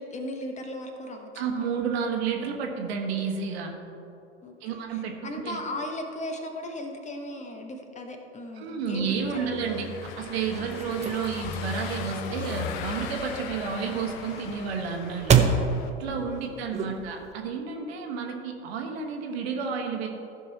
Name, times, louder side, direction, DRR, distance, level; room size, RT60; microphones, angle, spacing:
voice 1, 0.0-1.5 4.4-9.9 16.1-17.1 18.1-18.2, left 1 dB, 20° left, 4 dB, 1.1 m, -37 dB
voice 2, 1.3-3.7 4.6-5.6 8.6-9.9 10.2-15.3 16.0-20.1, right 6 dB, 65° right, 2 dB, 1.5 m, -31 dB
Car passing by / Engine, 9.2-15.9, left 6 dB, 50° left, 0.9 m, -38 dB
sound 1, 10.2-17.3, right 6 dB, 20° right, 0.7 m, -29 dB
14.5 x 5.5 x 4.2 m, 2.8 s
hypercardioid pair, 95°, 34 cm